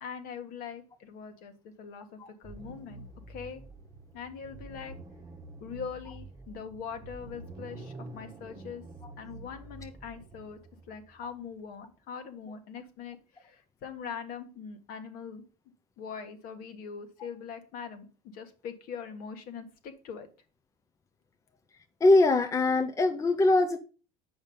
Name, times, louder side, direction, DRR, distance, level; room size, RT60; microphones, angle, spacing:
voice 1, 0.0-3.6 4.1-4.9 5.6-8.8 9.2-10.6 10.9-15.4 16.0-20.3, left 6 dB, 60° left, 1.6 m, -42 dB
sound 1, 2.4-11.8, right 2 dB, 20° right, 1.1 m, -48 dB
voice 2, 22.0-23.8, left 2 dB, 20° left, 0.6 m, -22 dB
7.2 x 5.2 x 5.5 m
supercardioid pair, 110°, 17 cm